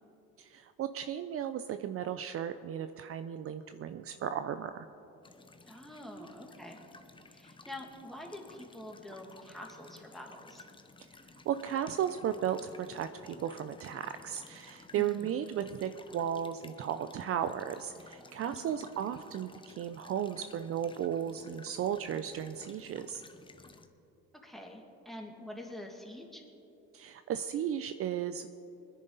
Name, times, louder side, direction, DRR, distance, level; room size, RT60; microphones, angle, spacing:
voice 1, 0.4-4.9 11.5-23.2 26.9-28.5, right 9 dB, 45° right, 10 dB, 0.6 m, -35 dB
sound 1, 5.2-23.9, left 3 dB, 15° left, 0.9 m, -55 dB
voice 2, 5.7-6.8 7.3-10.6 15.0-15.3 18.5-18.9 24.4-26.4, left 1 dB, ahead, 0 dB, 2.3 m, -46 dB
21.0 x 10.5 x 4.0 m, 2.9 s
supercardioid pair, 85°, 31 cm